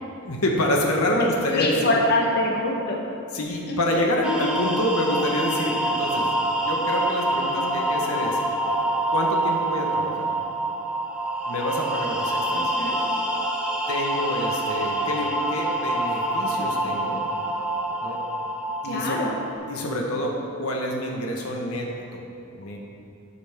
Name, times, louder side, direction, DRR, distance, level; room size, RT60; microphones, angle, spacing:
voice 1, 0.2-1.9 3.3-8.4 9.1-10.3 11.5-12.7 13.9-17.2 18.0-18.2 18.8-19.2 19.7-22.2 22.5-22.8, left 1 dB, 85° left, 0 dB, 1.4 m, -27 dB
voice 2, 1.2-3.0 3.7-4.0 12.5-12.9 18.9-19.3, left 1 dB, 50° left, -1 dB, 1.2 m, -25 dB
sound 1, 4.2-19.5, right 1 dB, 5° right, 0.9 m, -26 dB
13.0 x 8.4 x 3.7 m, 2.6 s
head